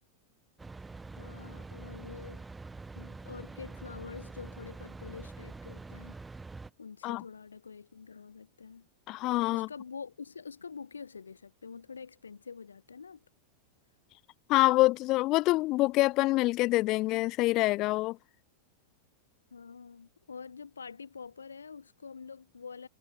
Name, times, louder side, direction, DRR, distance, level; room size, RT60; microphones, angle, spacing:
sound 1, 0.6-6.7, right 3 dB, 10° right, 5.1 m, -45 dB
voice 1, 1.2-2.5 3.0-6.2 6.8-8.9 9.5-13.2 19.5-22.9, left 5 dB, 75° left, 7.3 m, -46 dB
voice 2, 9.1-9.7 14.5-18.2, left 19 dB, 40° left, 0.6 m, -26 dB
figure-of-eight pair, 90°, 0 cm